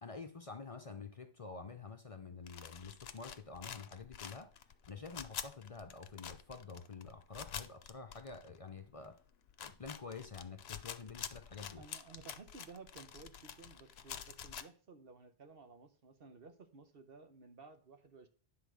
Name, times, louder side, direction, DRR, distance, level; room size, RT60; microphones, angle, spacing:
voice 1, 0.0-4.5 4.9-9.2 9.6-11.9, left 4 dB, 40° left, 6 dB, 0.7 m, -48 dB
sound 1, 2.4-8.7 9.0-9.1 9.4-14.6, left 8 dB, 75° left, 0.9 m, -48 dB
voice 2, 11.8-18.3, right 4 dB, 65° right, 7 dB, 1.2 m, -56 dB
10.0 x 3.9 x 6.2 m, 0.42 s
omnidirectional pair, 1.1 m